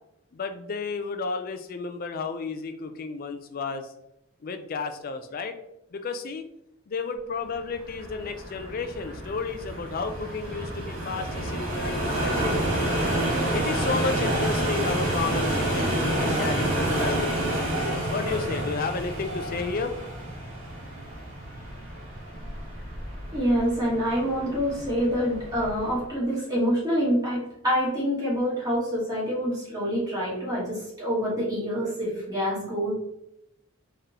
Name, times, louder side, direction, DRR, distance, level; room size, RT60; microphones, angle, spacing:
voice 1, 0.3-3.9 4.4-5.6 5.9-6.5 6.9-12.7 13.5-19.9, left 4 dB, 40° left, 7 dB, 0.3 m, -32 dB
sound 1, 7.7-26.0, right 1 dB, 65° right, 1.3 m, -29 dB
voice 2, 23.3-32.9, equal, 15° right, -7 dB, 1.3 m, -26 dB
3.6 x 3.3 x 2.8 m, 0.83 s
head